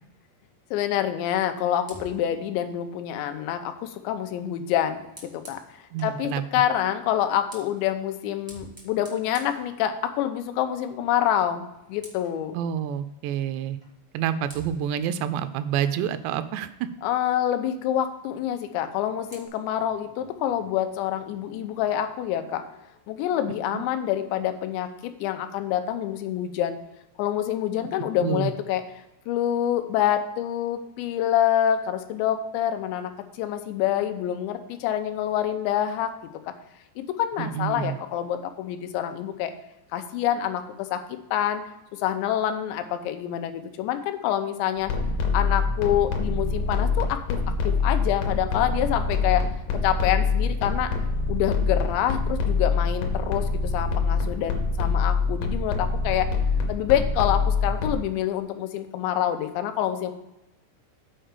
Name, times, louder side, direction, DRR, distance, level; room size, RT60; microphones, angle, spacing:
voice 1, 0.7-12.6 17.0-22.7 23.1-26.8 27.2-28.8 29.3-36.1 36.5-36.6 37.0-39.5 39.9-41.0 41.3-41.6 41.9-44.9 45.3-47.4 47.6-49.5 49.8-50.9 51.3-56.3 56.7-60.1, left 11 dB, 90° left, 8 dB, 3.0 m, -27 dB
Fire, 1.8-6.2 7.1-10.4 10.7-11.0 11.3-12.4 13.8-13.9 14.5-16.8 18.7-19.5, right 1 dB, 30° right, 0.4 m, -50 dB
voice 2, 5.9-6.4 12.5-13.8 14.1-16.9 23.7-23.8 28.2-28.5 37.4-38.0, right 9 dB, 85° right, 11 dB, 2.7 m, -28 dB
sound 1, 44.8-57.9, left 4 dB, 70° left, 2.3 m, -25 dB
7.5 x 4.6 x 6.5 m, 0.93 s
omnidirectional pair, 5.0 m